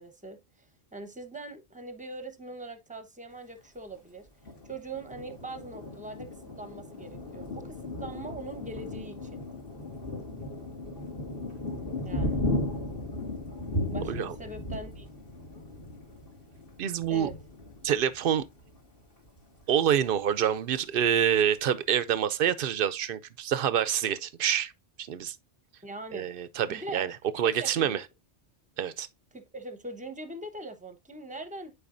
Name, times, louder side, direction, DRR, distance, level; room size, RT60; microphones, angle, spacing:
voice 1, 0.0-4.3 4.6-6.3 6.6-9.4 12.0-12.4 13.9-15.1 17.1-17.4 25.8-26.3 26.7-27.1 27.4-28.0 29.3-31.7, right 2 dB, 5° right, 0.9 m, -42 dB
Thunder, 4.4-18.8 19.2-19.4 19.7-20.3, left 1 dB, 55° left, 2.6 m, -36 dB
voice 2, 14.0-14.3 16.8-17.3 17.8-18.4 19.7-24.7 25.1-25.4 26.1-28.0 28.8-29.1, right 9 dB, 60° right, 0.8 m, -27 dB
10.5 x 4.8 x 2.6 m
omnidirectional pair, 1.1 m